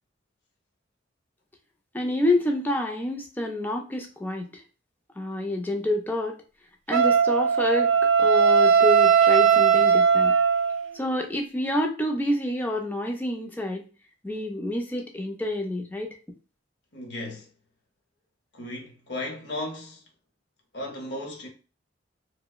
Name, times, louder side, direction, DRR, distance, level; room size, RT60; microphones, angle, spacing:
voice 1, 1.9-4.6 5.2-6.4 6.9-7.9 8.2-10.3 10.9-13.8 14.2-16.1, left 1 dB, 10° left, 0.3 m, -28 dB
Wind instrument woodwind instrument, 6.9-10.9, right 6 dB, 85° right, 0.3 m, -19 dB
voice 2, 16.9-17.5 18.5-20.0 20.7-21.5, left 1 dB, 60° left, 0.7 m, -35 dB
2.9 x 2.0 x 2.3 m
head